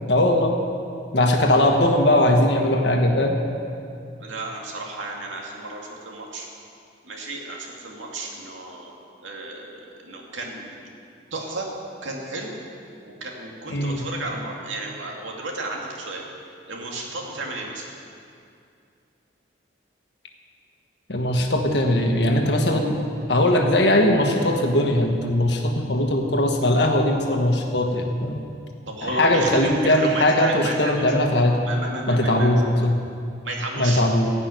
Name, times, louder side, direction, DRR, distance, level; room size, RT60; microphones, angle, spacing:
voice 1, 0.1-0.5 1.1-3.4 13.7-14.0 21.1-23.0 23.3-28.4 29.0-31.6 32.1-33.0 33.8-34.3, left 1 dB, 65° left, 3 dB, 1.5 m, -20 dB
voice 2, 4.2-6.5 7.0-9.0 9.2-10.8 11.3-11.7 12.0-12.5 13.1-16.2 16.7-17.9 28.9-31.1 31.6-32.7 33.4-34.0, right 2 dB, 90° right, -1 dB, 2.3 m, -33 dB
16.0 x 6.1 x 9.3 m, 2.5 s
head